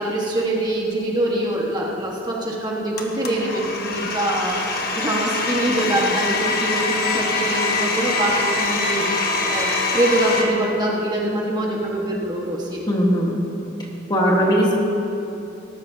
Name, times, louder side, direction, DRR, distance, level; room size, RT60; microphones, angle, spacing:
voice 1, 0.0-9.1 9.5-12.8, right 1 dB, 20° right, -3 dB, 1.5 m, -24 dB
Domestic sounds home sounds, 3.0-10.4, left 3 dB, 50° left, 1.2 m, -24 dB
voice 2, 12.9-13.4 14.1-14.7, equal, 20° left, -2 dB, 1.5 m, -18 dB
18.0 x 13.5 x 2.8 m, 2.8 s
head